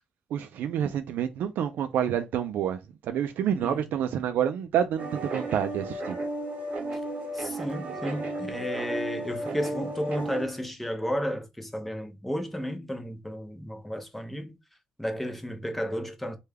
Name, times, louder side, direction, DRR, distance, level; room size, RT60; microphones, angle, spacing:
voice 1, 0.3-6.2, right 9 dB, 75° right, 0.3 m, -28 dB
voice 2, 3.5-3.9 6.9-7.0 7.3-14.5 15.0-16.4, equal, 5° left, 0.5 m, -33 dB
sound 1, 5.0-10.4, right 2 dB, 50° right, 1.0 m, -34 dB
3.3 x 2.2 x 3.3 m
cardioid pair, 165°, 3 cm